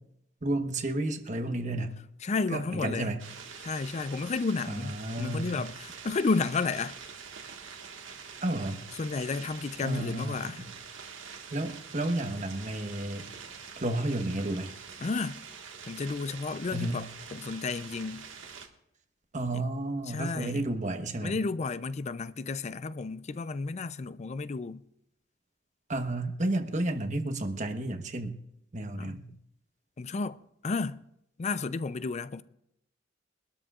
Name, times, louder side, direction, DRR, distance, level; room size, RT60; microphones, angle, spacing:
voice 1, 0.4-2.0 2.5-3.3 4.7-5.6 8.4-8.8 9.8-10.7 11.5-13.3 13.8-14.7 16.7-17.0 19.3-21.4 25.9-28.4 28.7-29.3, right 1 dB, 40° right, 1.2 m, -32 dB
voice 2, 2.2-3.1 3.6-7.0 8.9-10.6 15.0-15.4 15.9-18.3 19.5-19.7 20.1-20.7 21.2-24.8 29.0-29.2 30.0-31.0 31.4-32.4, left 4 dB, 35° left, 0.4 m, -32 dB
sound 1, 3.2-18.7, right 6 dB, 80° right, 1.6 m, -45 dB
24.0 x 12.5 x 2.4 m
head